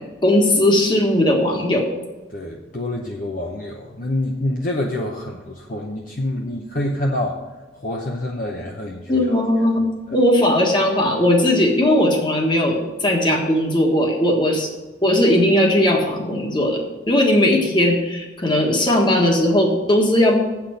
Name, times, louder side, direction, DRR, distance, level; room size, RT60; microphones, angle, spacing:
voice 1, 0.2-1.9 9.1-9.8 10.1-14.7 15.0-20.4, left 1 dB, 25° left, 1 dB, 1.5 m, -18 dB
voice 2, 2.3-7.4 7.7-9.3 10.1-10.2, left 1 dB, 45° left, 0 dB, 0.8 m, -27 dB
8.3 x 6.0 x 7.6 m, 1.2 s
head